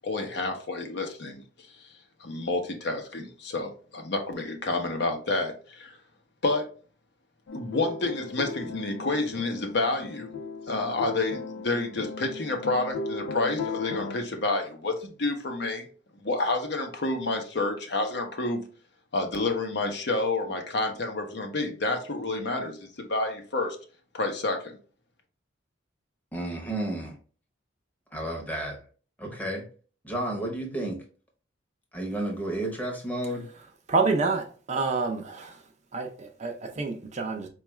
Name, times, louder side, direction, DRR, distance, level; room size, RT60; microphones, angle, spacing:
voice 1, 0.0-1.4 1.7-1.9 2.2-6.0 6.4-6.7 7.5-10.3 10.7-15.9 16.2-18.6 19.1-23.8 24.1-24.8, left 2 dB, 60° left, 0.7 m, -29 dB
sound 1, 7.5-14.2, left 4 dB, 85° left, 0.4 m, -37 dB
voice 2, 26.3-27.2 28.1-28.8 29.2-29.7 30.0-31.0 31.9-33.5, right 1 dB, 10° left, 0.8 m, -32 dB
voice 3, 33.9-35.6 35.9-37.5, right 3 dB, 35° right, 0.5 m, -28 dB
4.5 x 2.3 x 3.1 m
head